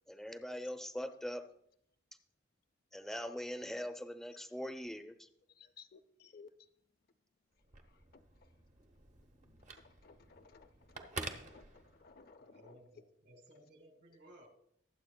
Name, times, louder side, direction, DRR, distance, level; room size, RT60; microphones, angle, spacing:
voice 1, 0.1-1.4 2.9-5.3, equal, ahead, 8 dB, 0.5 m, -42 dB
voice 2, 5.6-6.5 10.0-12.8, left 5 dB, 50° left, 8 dB, 0.5 m, -59 dB
Telephone, 7.6-12.3, right 3 dB, 40° right, 0.8 m, -49 dB
voice 3, 12.4-14.5, right 1 dB, 60° right, 4 dB, 2.1 m, -60 dB
22.5 x 7.7 x 2.2 m, 0.72 s
head